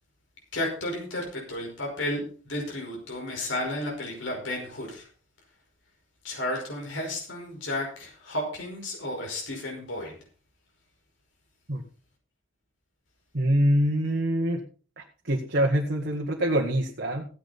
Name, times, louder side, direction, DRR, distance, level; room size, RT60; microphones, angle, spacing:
voice 1, 0.5-5.1 6.2-10.1, left 1 dB, 70° left, 0 dB, 5.3 m, -32 dB
voice 2, 13.3-14.6 15.3-17.3, equal, 55° right, 0 dB, 1.7 m, -24 dB
15.5 x 10.0 x 4.3 m, 0.39 s
head